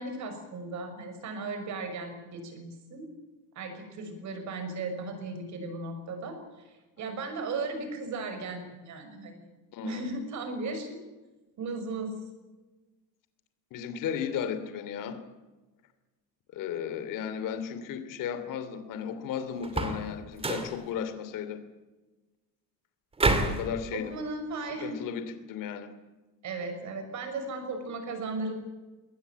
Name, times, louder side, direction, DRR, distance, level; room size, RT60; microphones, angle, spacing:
voice 1, 0.0-3.1 3.5-6.4 6.6-9.5 9.8-11.0 11.6-12.1 23.9-24.9 26.4-28.5, right 3 dB, 45° right, 7 dB, 6.2 m, -36 dB
voice 2, 9.7-10.1 13.7-15.2 16.5-21.6 23.4-24.1 24.8-25.9, left 8 dB, 55° left, 10 dB, 2.8 m, -35 dB
sound 1, 19.6-20.1 20.4-20.8 23.2-23.6, right 2 dB, 15° right, 2.5 m, -27 dB
21.0 x 19.0 x 9.2 m, 1.2 s
cardioid pair, 165°, 40 cm